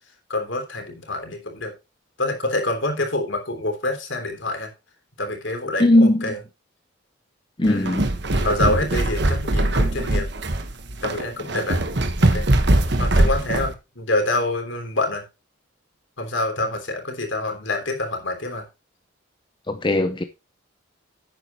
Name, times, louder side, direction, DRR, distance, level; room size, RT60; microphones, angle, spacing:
voice 1, 0.3-1.7 2.2-4.7 5.2-6.4 7.7-10.3 11.0-11.8 12.2-12.5 13.0-15.2 16.2-18.7, left 2 dB, 65° left, 3.3 m, -26 dB
voice 2, 5.8-6.3 7.6-8.0 19.7-20.2, left 1 dB, 25° left, 0.7 m, -18 dB
sound 1, 7.7-13.7, right 1 dB, 55° right, 1.3 m, -21 dB
11.0 x 9.0 x 3.0 m
head